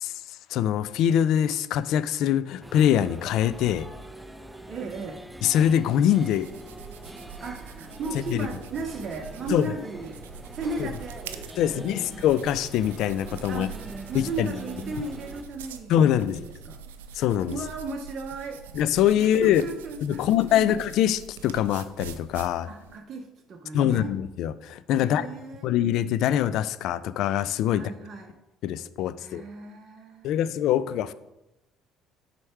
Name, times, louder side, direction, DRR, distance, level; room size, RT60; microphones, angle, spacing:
voice 1, 0.5-3.9 5.4-6.5 8.3-8.5 9.5-9.7 11.6-13.7 14.1-14.5 15.9-16.4 17.2-17.6 18.7-19.6 20.0-22.7 23.7-25.3 25.6-27.8 28.6-29.4 30.2-31.1, left 10 dB, 65° left, 14 dB, 0.4 m, -23 dB
sound 1, 2.6-15.4, right 1 dB, 10° right, 0.6 m, -43 dB
voice 2, 4.7-5.2 7.4-10.2 10.5-11.3 11.6-12.2 13.5-16.8 17.5-18.6 19.2-20.8 22.7-24.2 25.0-25.7 27.7-28.4 29.2-30.4, right 3 dB, 45° right, 3 dB, 0.8 m, -36 dB
sound 2, 5.5-23.0, right 7 dB, 85° right, 0.4 m, -44 dB
6.3 x 4.5 x 4.6 m, 0.93 s
hypercardioid pair, 60°, 0 cm